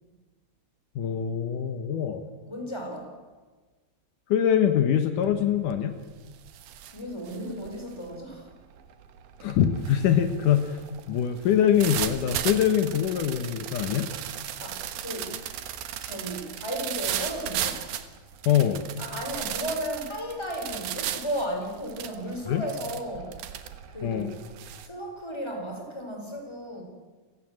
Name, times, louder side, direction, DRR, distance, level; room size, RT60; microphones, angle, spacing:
voice 1, 0.9-2.2 4.3-5.9 9.4-10.8 11.1-14.1 18.4-18.8 22.5-22.6 24.0-24.3, left 9 dB, 90° left, 8 dB, 1.8 m, -23 dB
voice 2, 2.5-3.1 6.9-8.5 14.6-15.4 16.0-17.8 19.0-23.4 23.9-24.3 24.8-26.8, equal, 5° left, 2 dB, 4.3 m, -34 dB
sound 1, 5.2-5.6 5.9-24.9, right 11 dB, 65° right, 2.5 m, -36 dB
29.0 x 17.5 x 7.6 m, 1.4 s
omnidirectional pair, 5.6 m